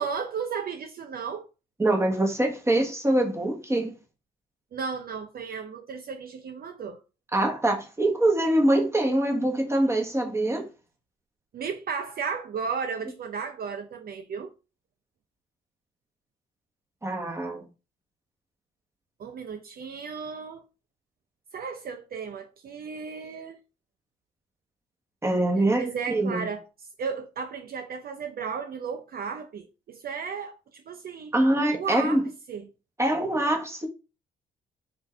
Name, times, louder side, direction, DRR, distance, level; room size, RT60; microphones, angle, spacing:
voice 1, 0.0-1.5 4.7-7.0 11.5-14.5 19.2-20.6 21.5-23.6 25.8-31.3 31.7-32.2 32.5-32.6, right 6 dB, 50° right, 0.5 m, -34 dB
voice 2, 1.8-3.9 7.3-10.7 17.0-17.7 25.2-26.5 31.3-32.2 33.0-33.9, right 1 dB, 15° right, 1.2 m, -24 dB
4.4 x 2.6 x 4.3 m
cardioid pair, 90°, 20 cm